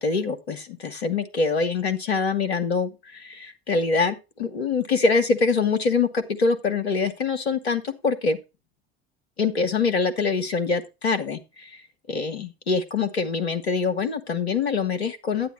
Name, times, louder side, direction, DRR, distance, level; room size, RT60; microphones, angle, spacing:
voice 1, 0.0-8.4 9.4-11.8 12.1-15.5, left 4 dB, 90° left, 8 dB, 1.1 m, -24 dB
10.0 x 9.2 x 3.0 m, 0.26 s
hypercardioid pair, 65°, 31 cm